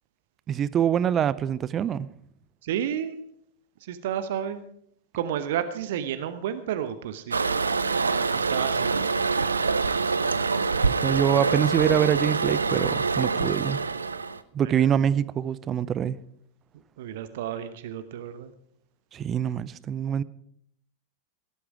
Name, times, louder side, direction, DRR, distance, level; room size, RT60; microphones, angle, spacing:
voice 1, 0.5-2.1 10.8-13.8 14.5-16.2 19.1-20.2, right 9 dB, 25° right, 0.6 m, -25 dB
voice 2, 2.6-3.2 3.8-4.6 5.1-7.5 8.3-9.1 14.6-14.9 17.0-18.5, right 9 dB, 55° right, 0.9 m, -31 dB
Toilet flush, 7.3-14.4, right 4 dB, 75° right, 0.7 m, -25 dB
17.5 x 11.5 x 4.8 m
figure-of-eight pair, 90°, 0 cm